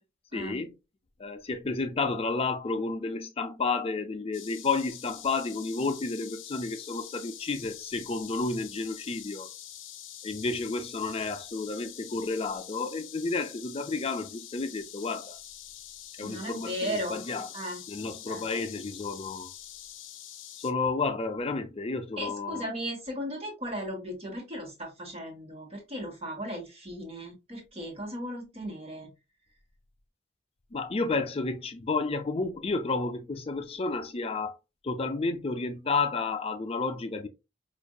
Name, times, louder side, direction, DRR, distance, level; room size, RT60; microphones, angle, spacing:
voice 1, 0.3-0.7 1.2-9.5 10.2-15.4 16.2-17.5 17.9-19.5 20.6-22.6 30.7-34.5 34.8-37.3, left 3 dB, 30° left, 0.5 m, -31 dB
sound 1, 4.3-20.7, left 11 dB, 80° left, 0.6 m, -45 dB
voice 2, 16.2-17.2 17.5-18.5 22.2-29.1, equal, 30° right, 1.3 m, -36 dB
5.0 x 2.5 x 2.3 m
head